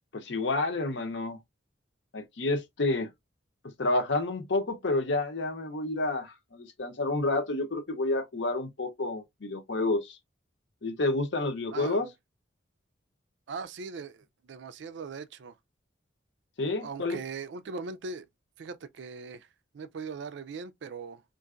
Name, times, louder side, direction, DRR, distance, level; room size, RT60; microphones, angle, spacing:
voice 1, 0.1-1.4 2.1-3.1 3.8-10.2 10.8-12.1 16.6-17.2, left 2 dB, 65° left, 0.8 m, -29 dB
voice 2, 11.7-12.0 13.5-15.6 16.8-18.3 18.6-19.5 19.7-21.2, right 4 dB, 65° right, 0.4 m, -40 dB
3.8 x 2.5 x 2.4 m
head